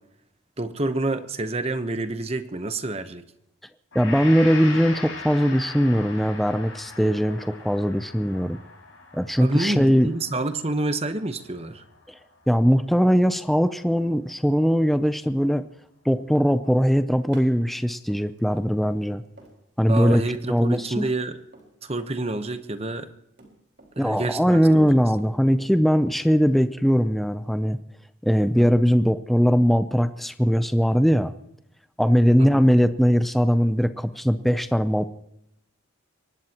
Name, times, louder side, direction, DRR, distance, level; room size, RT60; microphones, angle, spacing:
voice 1, 0.6-3.2 9.4-11.8 19.9-21.4 21.8-23.1 24.0-25.1 28.6-28.7 32.4-32.7, right 2 dB, 30° right, 10 dB, 0.9 m, -28 dB
Gong, 3.9-12.2 12.7-12.8, left 4 dB, 65° left, 6.3 m, -40 dB
voice 2, 3.9-8.6 9.1-10.1 12.1-12.2 12.5-15.7 16.1-19.2 19.8-20.2 20.5-21.1 24.0-27.8 28.2-31.3 32.0-35.1, equal, ahead, 11 dB, 0.5 m, -20 dB
Run, 16.7-22.2 22.4-24.0 24.2-25.8 26.1-27.5, right 2 dB, 55° right, 4.1 m, -52 dB
23.0 x 19.0 x 3.0 m, 0.81 s
head